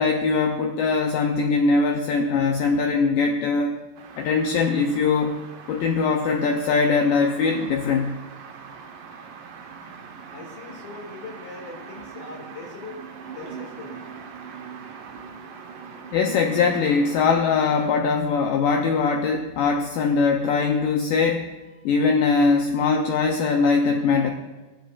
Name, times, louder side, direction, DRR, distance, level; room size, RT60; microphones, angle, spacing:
voice 1, 0.0-3.8 4.2-5.4 5.7-8.2 16.1-21.5 21.9-24.3, left 4 dB, 80° left, 3 dB, 1.9 m, -21 dB
sound 1, 4.0-17.9, right 6 dB, 65° right, 2.2 m, -41 dB
voice 2, 10.3-14.1 21.7-21.9, left 4 dB, 50° left, -2 dB, 3.3 m, -41 dB
16.5 x 11.5 x 2.5 m, 1.2 s
omnidirectional pair, 4.7 m